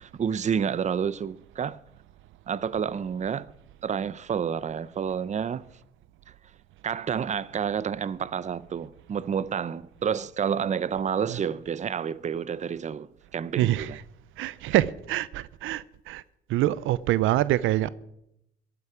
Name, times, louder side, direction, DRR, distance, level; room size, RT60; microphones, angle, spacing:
voice 1, 0.0-1.8 2.5-3.5 3.8-5.6 6.8-13.1 13.3-14.0, right 7 dB, 35° right, 0.6 m, -29 dB
voice 2, 13.6-14.0 14.4-16.2 16.5-17.9, right 14 dB, 85° right, 0.5 m, -25 dB
15.0 x 12.0 x 4.9 m
cardioid pair, 90°, 20 cm